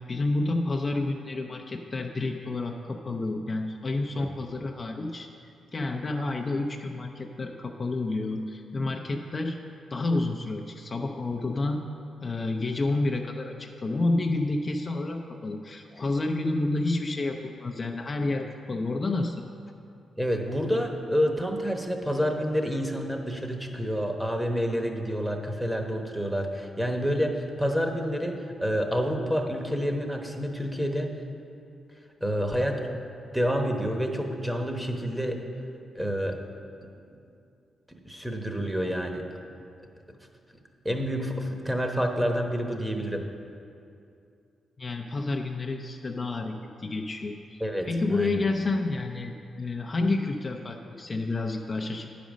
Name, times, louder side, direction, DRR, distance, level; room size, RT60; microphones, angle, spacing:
voice 1, 0.1-5.3 5.7-9.6 9.9-11.8 12.2-19.4 44.8-52.1, left 2 dB, 40° left, 2 dB, 0.6 m, -29 dB
voice 2, 20.2-31.1 32.2-33.0 33.3-35.4 35.9-36.4 38.0-39.2 40.8-43.2 47.6-48.4, equal, 5° right, 3 dB, 1.1 m, -28 dB
9.9 x 5.1 x 6.3 m, 2.5 s
cardioid pair, 65°, 0 cm